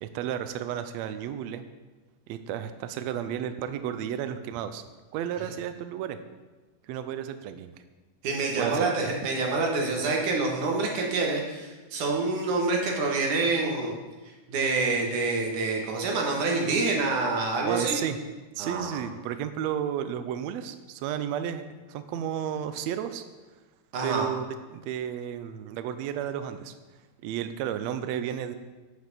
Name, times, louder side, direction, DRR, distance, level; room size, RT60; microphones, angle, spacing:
voice 1, 0.0-1.6 2.3-4.8 5.1-6.2 6.9-7.7 8.6-9.1 17.6-18.2 18.6-21.6 21.9-23.2 24.0-24.5 24.7-26.7 27.2-28.6, right 10 dB, 85° right, 11 dB, 1.5 m, -32 dB
voice 2, 8.2-14.0 14.5-18.0 18.6-19.0 23.9-24.3, right 3 dB, 70° right, 0 dB, 3.1 m, -27 dB
9.6 x 6.5 x 6.7 m, 1.2 s
omnidirectional pair, 3.8 m